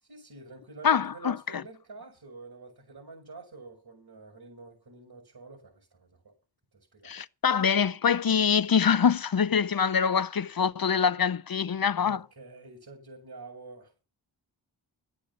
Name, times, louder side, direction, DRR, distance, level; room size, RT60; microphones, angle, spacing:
voice 1, 0.1-6.3 6.7-7.2 12.0-14.0, right 3 dB, 55° right, 6.2 m, -47 dB
voice 2, 0.8-1.4 7.0-12.2, left 7 dB, 50° left, 0.7 m, -24 dB
12.5 x 8.5 x 7.2 m
wide cardioid pair, 80°, 46 cm